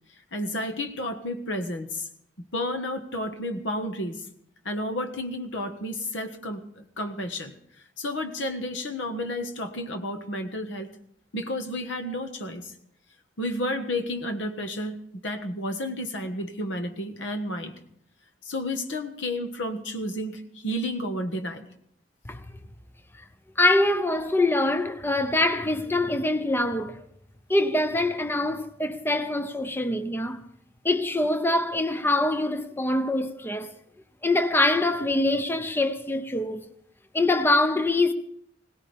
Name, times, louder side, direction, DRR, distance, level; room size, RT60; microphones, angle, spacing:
voice 1, 0.3-2.1 2.5-4.3 4.6-7.5 8.0-10.9 11.3-12.7 13.4-17.7 18.4-21.7, left 1 dB, 70° left, 1.5 m, -31 dB
voice 2, 23.6-27.0 27.5-30.4 30.8-33.7 34.2-36.6 37.1-38.1, left 2 dB, 10° left, 0.6 m, -24 dB
21.5 x 18.0 x 3.5 m
head